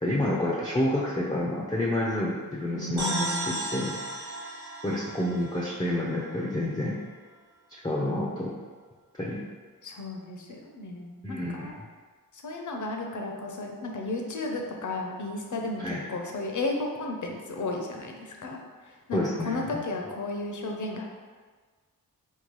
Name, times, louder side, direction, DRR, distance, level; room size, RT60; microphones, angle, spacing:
voice 1, 0.0-4.0 4.8-7.0 7.8-8.5 9.1-9.4 11.2-11.7 15.8-16.0 19.1-19.8, left 1 dB, 10° left, -4 dB, 0.4 m, -29 dB
voice 2, 2.7-3.6 9.8-11.7 12.4-15.8 16.1-18.6 19.1-21.1, left 2 dB, 55° left, 1 dB, 0.6 m, -33 dB
sound 1, 3.0-6.6, right 1 dB, 40° right, 1.1 m, -35 dB
3.7 x 2.3 x 3.0 m, 1.5 s
cardioid pair, 60°, 36 cm